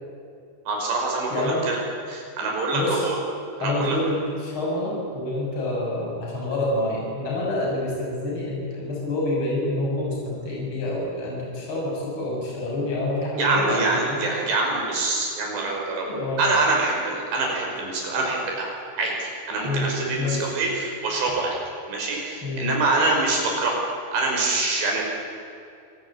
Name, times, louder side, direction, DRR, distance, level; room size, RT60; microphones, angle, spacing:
voice 1, 0.7-1.8 2.1-3.2 3.6-4.0 13.4-16.1 16.4-21.6 21.9-23.8 24.1-25.0, right 3 dB, 60° right, -1 dB, 7.7 m, -25 dB
voice 2, 1.3-1.7 2.7-3.1 3.6-14.2 16.1-16.4 19.6-20.5 22.4-22.7, left 1 dB, 25° left, -3 dB, 7.5 m, -27 dB
27.0 x 19.5 x 8.9 m, 2.5 s
omnidirectional pair, 5.8 m